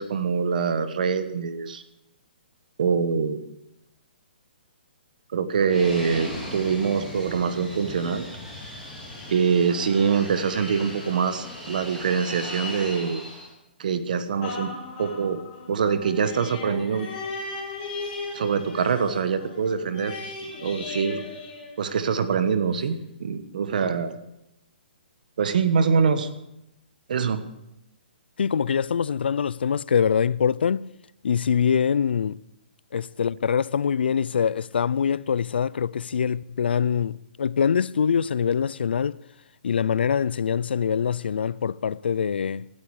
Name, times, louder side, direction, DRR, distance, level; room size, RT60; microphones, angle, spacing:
voice 1, 0.0-1.8 2.8-3.4 5.3-8.2 9.3-13.2 13.8-14.7 15.0-15.4 15.7-17.1 18.3-20.2 20.6-21.2 21.8-24.1 25.4-26.3 27.1-27.4, right 6 dB, 50° right, 1.3 m, -24 dB
Fixed-wing aircraft airplane, 5.7-13.5, left 1 dB, 5° right, 3.4 m, -38 dB
sound 1, 14.4-22.3 22.8-22.9, left 3 dB, 25° left, 5.6 m, -37 dB
voice 2, 28.4-30.9 31.2-32.4 32.9-39.2 39.6-42.7, left 7 dB, 75° left, 0.4 m, -24 dB
19.5 x 12.5 x 4.9 m
hypercardioid pair, 175°, 6 cm